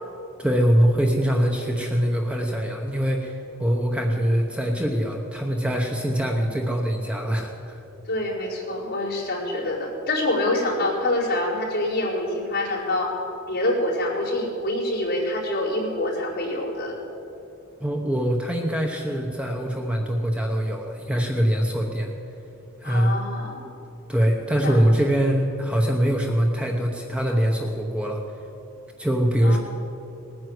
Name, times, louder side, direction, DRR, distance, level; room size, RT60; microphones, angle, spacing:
voice 1, 0.4-7.8 17.8-22.1 22.8-23.1 24.1-28.2 29.0-29.6, equal, 5° right, 2 dB, 0.9 m, -23 dB
voice 2, 8.1-13.1 13.5-17.0 22.8-23.6 24.6-24.8 29.4-29.6, left 1 dB, 50° left, -5 dB, 4.4 m, -26 dB
19.5 x 9.4 x 7.8 m, 2.8 s
head